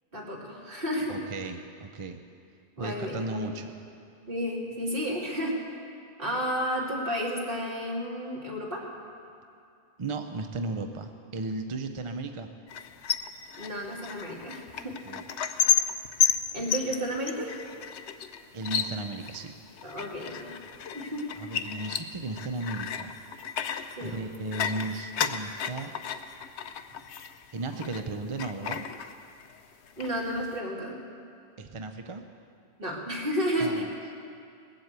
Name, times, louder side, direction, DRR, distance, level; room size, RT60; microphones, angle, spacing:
voice 1, 0.1-1.2 2.8-3.5 4.3-5.6 6.2-8.8 13.6-15.0 16.5-17.6 19.8-20.5 20.9-21.3 24.0-24.2 30.0-31.0 32.8-33.8, equal, 55° right, -3 dB, 2.7 m, -32 dB
voice 2, 1.1-2.2 2.8-3.7 10.0-12.5 15.1-15.2 18.5-19.5 21.4-23.2 24.0-26.0 27.5-28.9 31.6-32.2 33.6-33.9, right 3 dB, 35° right, 6 dB, 0.6 m, -35 dB
sound 1, 12.7-28.1 28.4-29.6 29.9-30.5, left 8 dB, 85° left, 1.0 m, -32 dB
19.5 x 7.9 x 8.1 m, 2.4 s
omnidirectional pair, 1.1 m